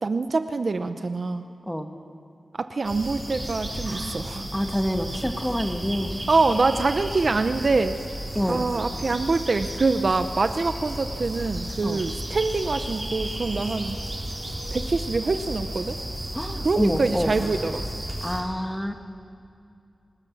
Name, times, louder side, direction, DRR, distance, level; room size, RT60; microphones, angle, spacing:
voice 1, 0.0-1.5 2.5-4.5 6.3-8.0 8.5-14.0 14.7-16.0 16.6-17.8, right 3 dB, 45° right, 9 dB, 0.7 m, -25 dB
sound 1, 2.8-18.4, right 1 dB, 20° right, 5.0 m, -33 dB
voice 2, 3.9-4.2 4.5-6.1 8.3-8.6 11.8-12.0 16.3-17.3 18.2-18.9, equal, 5° left, 6 dB, 1.4 m, -27 dB
28.5 x 19.0 x 7.2 m, 2.5 s
wide cardioid pair, 140°, 0 cm